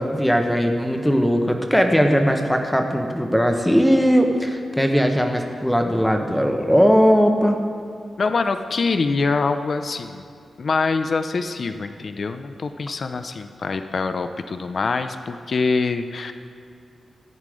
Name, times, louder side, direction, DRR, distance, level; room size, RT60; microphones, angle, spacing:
voice 1, 0.0-7.6, equal, 5° left, 4 dB, 0.9 m, -19 dB
voice 2, 8.2-10.2 10.6-16.3, left 4 dB, 50° left, 9 dB, 0.6 m, -24 dB
15.0 x 9.5 x 4.9 m, 2.4 s
wide cardioid pair, 130°, 0 cm